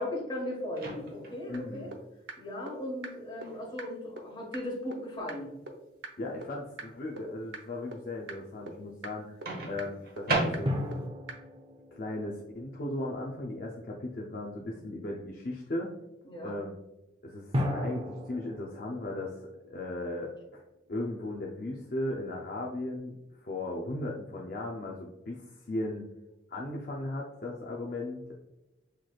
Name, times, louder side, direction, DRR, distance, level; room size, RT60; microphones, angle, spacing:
voice 1, 0.0-1.9 2.4-5.5 16.2-16.6, left 1 dB, 25° left, -3 dB, 1.3 m, -37 dB
Microwave oven, 0.7-1.4 3.4-3.6 9.5-11.1, right 2 dB, 50° right, 0.9 m, -33 dB
voice 2, 1.5-1.9 6.2-9.3 9.7-11.0 11.9-15.9 16.4-16.7 17.2-19.4 19.7-20.6 20.9-26.0 26.5-28.3, left 1 dB, 50° left, -2 dB, 0.5 m, -37 dB
sound 1, 1.5-1.6 1.9-2.0 2.3-2.4 2.7-2.8 3.0-3.1 3.4-3.5 3.8-3.9 4.2-4.3 4.5-4.6 4.9-5.0 5.3-5.4 5.7-5.8 6.0-6.1 6.4-6.5 6.8-6.9 7.2-7.3 7.5-7.6 7.9-8.0 8.3-8.4 8.7-8.8 9.0-9.1 9.4-9.5 9.8-9.9 10.2-10.3 10.5-10.6 10.9-11.0 11.3-11.4, right 3 dB, 80° right, 0.6 m, -40 dB
sound 2, 10.6-13.5 17.5-20.8, left 1 dB, 25° right, 0.6 m, -36 dB
5.8 x 3.2 x 2.3 m, 0.97 s
head